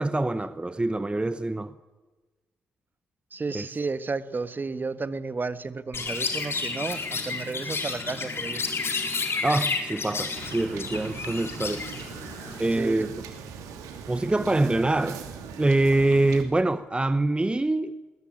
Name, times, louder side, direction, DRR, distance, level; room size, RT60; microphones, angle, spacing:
voice 1, 0.0-1.7 3.5-3.7 9.4-11.9 12.6-13.1 14.1-15.2 15.6-17.9, right 2 dB, 15° right, 1.0 m, -25 dB
voice 2, 3.3-8.6 12.8-13.1, right 4 dB, 35° right, 1.4 m, -32 dB
Chirp tweet, 5.9-12.8, left 4 dB, 45° left, 4.4 m, -31 dB
Wind / Boat Water vehicle, 10.4-16.4, right 6 dB, 75° right, 2.9 m, -40 dB
20.5 x 19.5 x 8.8 m
hypercardioid pair, 40°, 6 cm